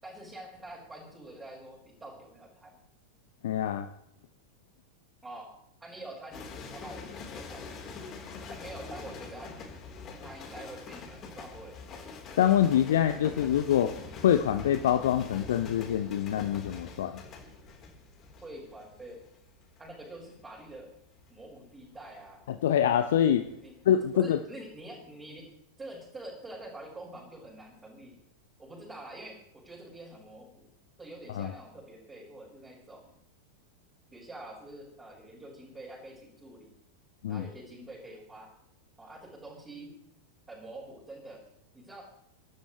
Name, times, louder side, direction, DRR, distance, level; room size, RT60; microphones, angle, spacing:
voice 1, 0.0-2.8 5.2-5.5 5.8-6.4 6.7-8.1 8.5-9.5 10.2-11.8 18.4-19.2 19.8-20.9 21.3-22.4 23.6-23.7 24.1-25.5 25.8-28.1 28.6-30.7 31.0-33.2 34.1-36.7 37.3-38.5 39.0-39.9 40.5-41.4 41.7-42.1, right 1 dB, 15° right, -6 dB, 5.7 m, -46 dB
voice 2, 3.4-3.9 12.4-13.9 14.2-17.2 22.6-23.5 23.9-24.4 31.4-31.5 37.2-37.5, left 10 dB, 60° left, 9 dB, 0.9 m, -25 dB
sound 1, 6.3-23.5 23.8-24.2, left 4 dB, 30° left, 3.9 m, -45 dB
24.0 x 12.5 x 3.2 m, 0.77 s
figure-of-eight pair, 90°, 0 cm